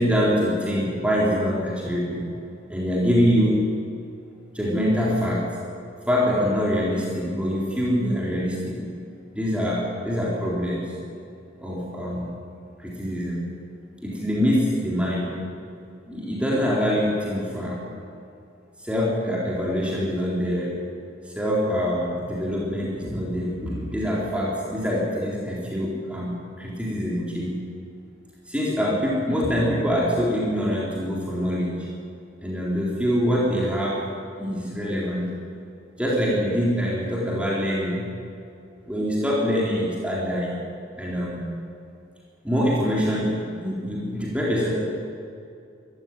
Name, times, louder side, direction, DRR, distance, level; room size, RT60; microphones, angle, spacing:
voice 1, 0.0-2.2 2.7-3.6 4.5-5.4 6.1-8.8 9.3-10.9 11.6-12.3 12.8-13.5 14.0-15.3 16.1-17.8 18.8-20.8 21.2-27.6 28.5-31.9 32.4-34.0 34.4-35.3 36.0-38.1 38.9-40.6 41.0-41.4 42.4-44.8, equal, 5° right, -5 dB, 4.0 m, -24 dB
23.5 x 14.5 x 9.1 m, 2.5 s
head